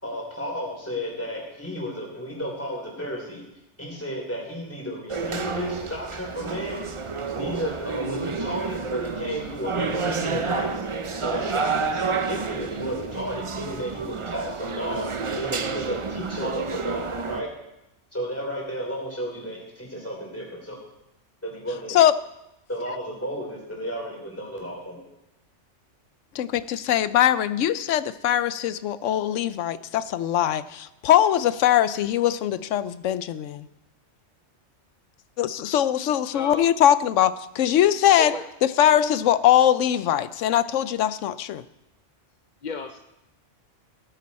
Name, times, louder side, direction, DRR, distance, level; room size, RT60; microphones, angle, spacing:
voice 1, 0.0-3.4 3.8-6.9 7.3-10.9 11.2-15.1 15.3-17.5 18.1-20.8 21.4-22.0 22.7-25.0, equal, 10° left, -2 dB, 3.6 m, -33 dB
sound 1, 5.1-17.4, right 4 dB, 35° right, 0.5 m, -30 dB
voice 2, 26.3-33.7 35.4-38.3 38.6-41.6, left 11 dB, 85° left, 15 dB, 0.9 m, -21 dB
voice 3, 36.3-36.7 38.2-38.5 42.6-43.0, left 5 dB, 50° left, 6 dB, 0.6 m, -33 dB
17.0 x 9.3 x 4.2 m, 0.89 s
omnidirectional pair, 1.2 m